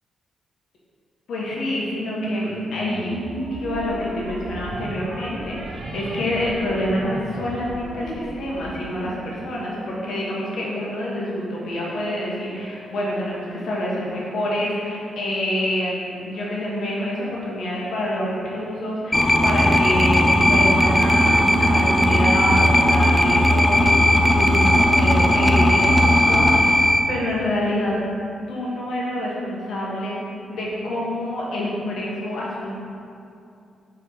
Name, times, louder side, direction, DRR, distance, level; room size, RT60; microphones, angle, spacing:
voice 1, 1.3-3.2 3.5-28.0 28.5-30.2 30.5-32.8, left 1 dB, 60° left, -5 dB, 1.3 m, -27 dB
sound 1, 2.1-10.9, right 1 dB, 45° right, 0.8 m, -33 dB
sound 2, 19.1-27.0, left 1 dB, 5° left, 0.3 m, -17 dB
4.5 x 4.5 x 5.6 m, 2.6 s
wide cardioid pair, 165°, 0 cm